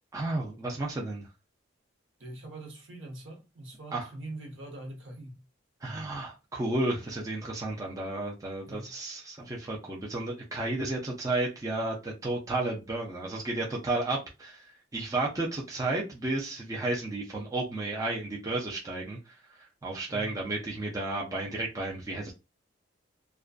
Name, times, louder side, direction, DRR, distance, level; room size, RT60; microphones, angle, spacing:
voice 1, 0.1-1.3 3.9-4.1 5.8-14.7 14.9-22.3, right 2 dB, 15° right, 0.4 m, -32 dB
voice 2, 2.2-5.4 8.7-8.9 20.1-20.4, right 1 dB, 70° right, 0.8 m, -43 dB
2.4 x 2.2 x 2.4 m
head